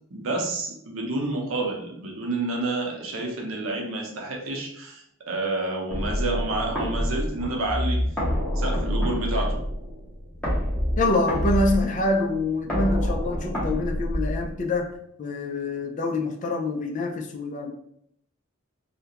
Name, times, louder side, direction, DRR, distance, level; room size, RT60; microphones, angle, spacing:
voice 1, 0.1-8.0 8.5-9.6, right 2 dB, 80° right, 0 dB, 0.6 m, -29 dB
sound 1, 5.9-14.9, equal, 5° left, 0.9 m, -27 dB
voice 2, 11.0-14.9 15.2-17.7, left 2 dB, 40° left, 1 dB, 0.4 m, -26 dB
2.4 x 2.1 x 2.8 m, 0.72 s
head